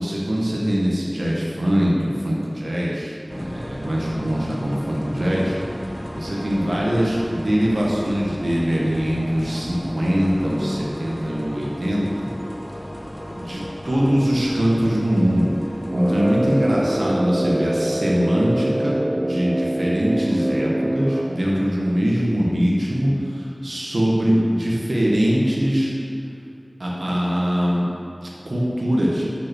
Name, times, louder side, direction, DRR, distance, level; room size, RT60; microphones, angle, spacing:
voice 1, 0.0-5.5 6.1-12.3 13.3-15.5 15.9-25.9 26.8-27.9 28.4-29.2, equal, 90° right, -5 dB, 1.5 m, -22 dB
sound 1, 3.3-16.9, equal, 15° left, 0.8 m, -35 dB
Brass instrument, 15.9-21.5, right 1 dB, 35° right, 0.5 m, -24 dB
6.7 x 6.2 x 6.2 m, 2.5 s
wide cardioid pair, 40°, 0 cm